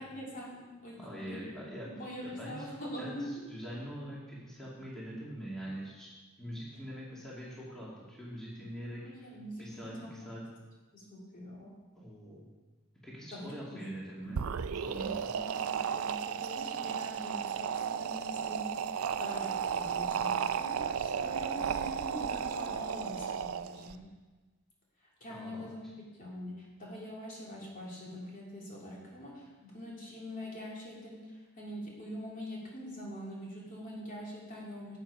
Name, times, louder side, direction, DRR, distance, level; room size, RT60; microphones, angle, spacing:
voice 1, 0.0-1.5 1.8-3.5 9.0-10.2 10.9-11.7 13.3-13.9 14.9-24.0 25.0-35.0, equal, 40° left, -4 dB, 2.7 m, -44 dB
voice 2, 1.0-1.9 2.2-3.2 3.5-6.1 6.4-9.0 9.6-10.4 12.0-12.5 13.0-14.4 14.8-15.3 25.3-25.7, equal, 5° left, -7 dB, 2.2 m, -43 dB
sound 1, 14.2-23.9, right 7 dB, 85° right, 0.4 m, -34 dB
11.0 x 7.9 x 4.8 m, 1.2 s
head